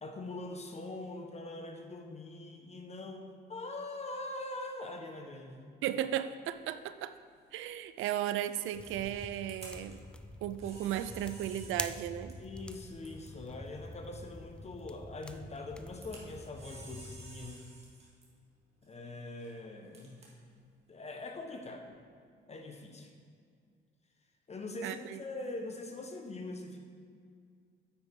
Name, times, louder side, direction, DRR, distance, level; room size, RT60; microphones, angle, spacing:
voice 1, 0.0-5.7 12.4-17.7 18.8-20.3 20.9-21.9 22.5-23.1 24.5-26.8, left 2 dB, 35° left, 4 dB, 1.2 m, -43 dB
voice 2, 5.8-7.1 7.5-10.0 10.4-12.4 24.8-25.2, right 11 dB, 90° right, 12 dB, 0.4 m, -35 dB
Camera, 6.4-21.9, right 2 dB, 30° right, 2.3 m, -57 dB
sound 1, 8.7-17.5, left 1 dB, 5° left, 0.4 m, -46 dB
9.2 x 9.0 x 3.7 m, 2.1 s
cardioid pair, 90°, 20 cm